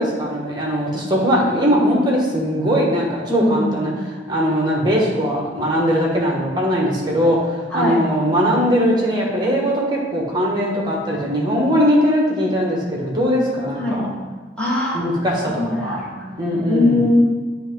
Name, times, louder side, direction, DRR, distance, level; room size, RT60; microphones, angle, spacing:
voice 1, 0.0-3.9 4.3-14.1 14.9-16.0 16.4-17.0, equal, 25° right, -2 dB, 1.2 m, -20 dB
voice 2, 3.3-3.9 7.7-8.0 13.8-14.0 14.6-15.0 15.4-17.2, left 2 dB, 5° left, -7 dB, 1.7 m, -21 dB
8.4 x 2.8 x 5.2 m, 1.3 s
head